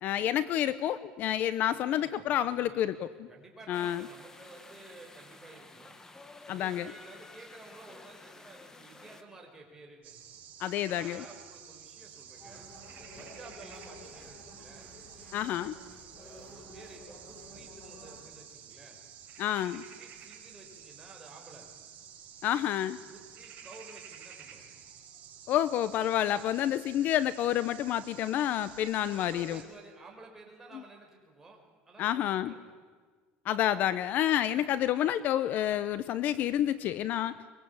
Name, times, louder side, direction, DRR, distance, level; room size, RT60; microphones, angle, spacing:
voice 1, 0.0-3.3 3.7-4.0 6.5-6.9 10.6-11.2 15.3-15.7 19.4-19.8 22.4-23.0 25.5-29.6 32.0-32.5 33.4-37.3, left 11 dB, 50° left, 16 dB, 0.7 m, -29 dB
voice 2, 1.8-6.0 6.5-10.2 10.9-12.7 13.2-14.9 16.1-19.0 19.7-21.7 23.1-24.6 29.1-31.6 31.9-32.6, right 2 dB, 10° right, 0 dB, 5.6 m, -53 dB
sound 1, 3.7-9.2, left 2 dB, 15° left, 1.5 m, -52 dB
sound 2, 10.0-29.6, right 8 dB, 40° right, 5.4 m, -51 dB
sound 3, 12.4-18.2, equal, 30° left, 7.6 m, -52 dB
23.5 x 22.5 x 8.7 m, 1.5 s
cardioid pair, 145°, 4 cm